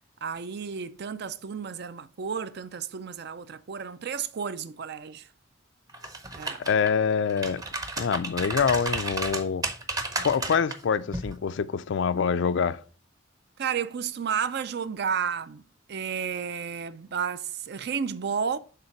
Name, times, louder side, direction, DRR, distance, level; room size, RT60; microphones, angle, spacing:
voice 1, 0.2-5.3 6.3-6.7 13.6-15.6 15.9-18.6, right 7 dB, 55° right, 0.4 m, -32 dB
sound 1, 5.9-6.9 7.3-10.8 11.1-11.3, right 2 dB, 20° right, 0.7 m, -32 dB
voice 2, 6.6-7.6 8.0-9.7 10.2-12.8, left 6 dB, 60° left, 0.4 m, -25 dB
6.8 x 3.9 x 5.7 m
head